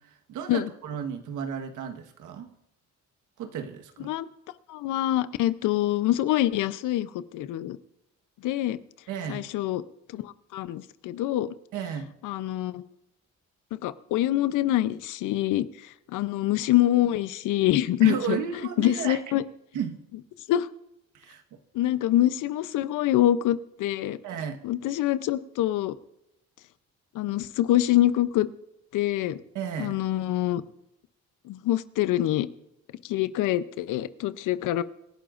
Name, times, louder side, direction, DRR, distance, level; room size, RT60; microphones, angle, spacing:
voice 1, 0.0-2.5 3.4-4.1 9.1-9.4 11.7-12.1 18.0-19.2 19.7-20.0 21.1-21.6 24.2-24.6 29.5-30.0, right 7 dB, 90° right, 6 dB, 1.4 m, -33 dB
voice 2, 4.7-7.8 8.4-8.8 9.3-9.8 10.1-11.5 12.2-12.8 13.7-15.6 16.1-18.4 18.8-19.4 20.5-20.7 21.7-24.2 24.6-26.0 27.1-28.5 28.9-29.4 29.8-30.6 31.5-32.5 33.0-34.8, left 13 dB, 90° left, 15 dB, 0.7 m, -25 dB
25.5 x 11.5 x 2.5 m, 0.84 s
cardioid pair, 90°, 30 cm